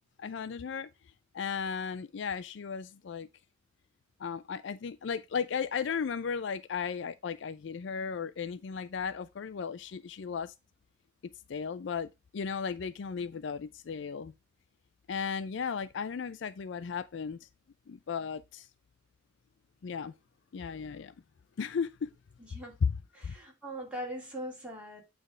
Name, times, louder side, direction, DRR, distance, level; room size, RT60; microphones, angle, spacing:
voice 1, 0.2-0.9 1.3-3.3 4.2-10.5 11.2-14.3 15.1-17.4 17.9-18.7 19.8-20.1 20.5-21.1 21.6-22.1 22.8-23.0 23.2-23.3, left 6 dB, 60° left, 0.4 m, -35 dB
voice 2, 23.1-25.0, right 1 dB, 5° right, 2.8 m, -40 dB
8.7 x 3.4 x 4.8 m
head